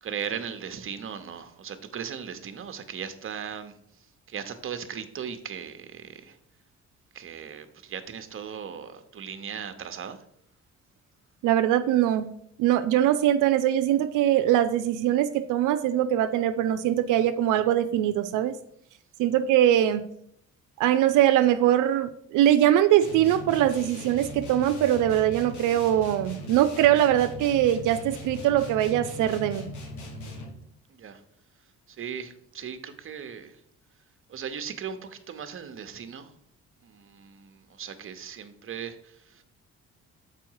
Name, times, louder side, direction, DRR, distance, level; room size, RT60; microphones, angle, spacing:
voice 1, 0.0-6.4 7.1-10.2 30.9-31.2 31.9-33.6 34.3-36.3 36.8-39.4, right 7 dB, 45° right, 0.9 m, -38 dB
voice 2, 11.4-12.3 12.6-18.5 19.2-20.1 20.8-29.7, right 12 dB, 90° right, 0.5 m, -22 dB
sound 1, 23.0-30.7, left 1 dB, 75° left, 1.6 m, -40 dB
6.8 x 4.8 x 4.7 m
cardioid pair, 90°, 30 cm